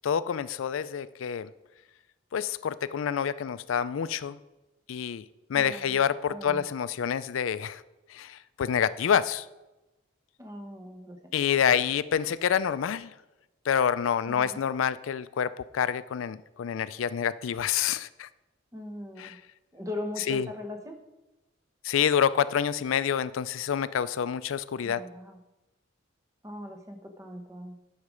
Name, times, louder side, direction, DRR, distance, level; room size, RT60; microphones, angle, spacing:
voice 1, 0.0-1.5 2.3-4.4 4.9-5.2 5.5-7.8 8.1-9.4 11.3-13.1 13.7-18.3 19.2-19.4 20.3-20.5 21.8-25.0, left 8 dB, 90° left, 16 dB, 0.4 m, -27 dB
voice 2, 5.5-6.0 6.3-6.6 10.4-11.2 14.3-14.6 18.7-19.4 19.7-21.0 24.8-25.4 26.4-27.8, left 1 dB, 15° right, 4 dB, 0.9 m, -40 dB
9.7 x 6.5 x 5.0 m, 1.0 s
head